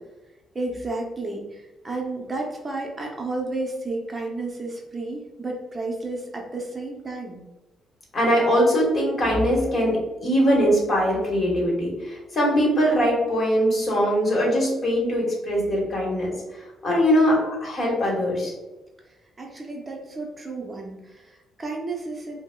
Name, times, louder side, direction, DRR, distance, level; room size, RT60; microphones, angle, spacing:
voice 1, 0.5-7.4 19.0-22.4, right 2 dB, 25° right, 0 dB, 0.6 m, -32 dB
voice 2, 8.1-16.3 16.8-18.5, equal, 45° left, -2 dB, 1.3 m, -21 dB
5.0 x 2.0 x 2.2 m, 1.1 s
cardioid pair, 90°, 0 cm